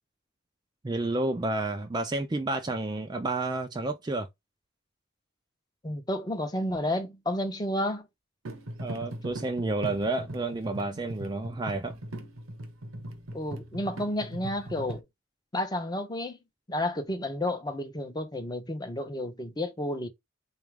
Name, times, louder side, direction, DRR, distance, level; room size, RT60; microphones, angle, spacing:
voice 1, 0.8-4.3 8.8-12.0, right 2 dB, 20° right, 0.3 m, -30 dB
voice 2, 5.8-8.1 13.3-15.0 15.5-16.4 16.7-20.1, left 1 dB, 20° left, 0.6 m, -31 dB
sound 1, 8.4-15.0, right 1 dB, 85° right, 0.9 m, -40 dB
3.9 x 2.4 x 3.2 m
head